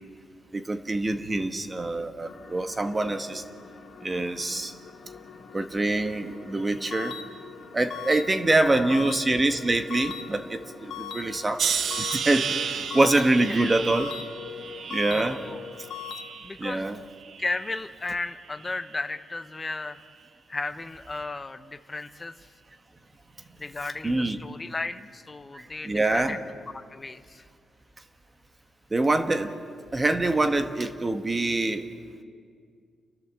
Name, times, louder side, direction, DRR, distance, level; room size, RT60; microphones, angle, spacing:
voice 1, 0.5-3.4 4.0-4.7 5.5-7.1 7.7-11.6 12.0-14.1 14.9-15.4 16.6-17.0 24.0-24.4 25.5-26.4 28.9-29.5 29.9-31.9, right 2 dB, 20° right, 8 dB, 1.1 m, -25 dB
sound 1, 2.2-16.0, left 6 dB, 55° left, 2.3 m, -46 dB
sound 2, 6.9-7.2 7.9-8.2 8.9-9.2 9.9-10.2 10.9-11.2 11.9-12.2 12.9-13.2 13.9-14.2 14.9-15.2 15.9-16.2, left 9 dB, 75° left, 1.2 m, -37 dB
voice 2, 8.5-9.0 13.5-13.9 15.1-15.6 16.4-16.9 17.4-20.0 20.5-22.3 23.6-26.4 26.7-27.4, left 3 dB, 20° left, 10 dB, 0.8 m, -34 dB
sound 3, 11.6-16.7 17.2-17.9 18.6-18.9, right 7 dB, 55° right, 0.9 m, -33 dB
29.5 x 12.0 x 7.3 m, 2.2 s
cardioid pair, 150°, 0 cm